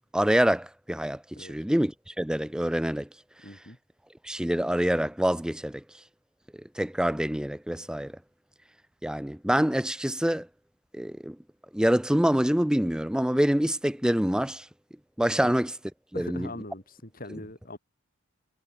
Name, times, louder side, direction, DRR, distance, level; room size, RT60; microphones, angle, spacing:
voice 1, 0.1-3.1 4.2-5.8 6.8-8.2 9.0-10.5 10.9-11.4 11.7-14.7 15.2-15.8 16.1-16.5, equal, 5° right, 0.5 m, -26 dB
voice 2, 3.4-3.8 15.4-15.5 16.1-17.8, left 1 dB, 40° left, 5.4 m, -41 dB
head